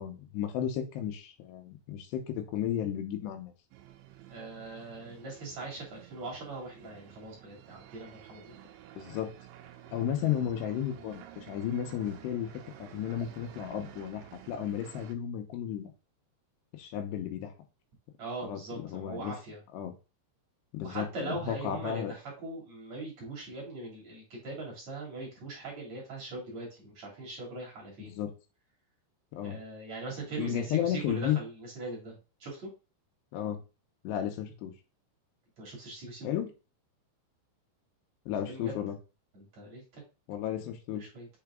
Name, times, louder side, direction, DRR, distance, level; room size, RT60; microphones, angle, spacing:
voice 1, 0.0-3.5 9.0-9.3 9.9-12.5 12.8-15.9 16.8-17.5 18.4-19.3 19.7-19.9 20.7-22.1 28.1-28.3 29.3-29.6 30.4-31.4 33.3-33.6 34.0-34.7 36.2-36.5 38.3-39.0 40.3-41.1, left 10 dB, 75° left, 6 dB, 2.8 m, -33 dB
sound 1, 3.7-15.2, right 11 dB, 90° right, 3.1 m, -51 dB
voice 2, 4.3-8.6 18.2-19.6 20.8-28.2 29.4-32.7 35.6-36.3 38.5-38.7 39.3-40.0 40.9-41.3, right 2 dB, 40° right, -2 dB, 3.2 m, -41 dB
7.0 x 4.0 x 3.6 m, 0.30 s
omnidirectional pair, 5.4 m